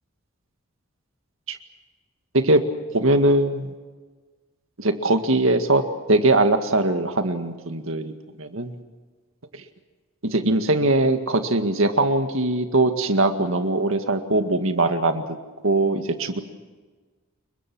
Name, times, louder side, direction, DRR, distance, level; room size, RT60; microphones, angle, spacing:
voice 1, 2.9-3.7 4.8-5.8 6.1-8.7 10.3-15.2 15.6-16.4, right 2 dB, 70° right, 7 dB, 2.0 m, -21 dB
29.0 x 23.5 x 6.2 m, 1.3 s
head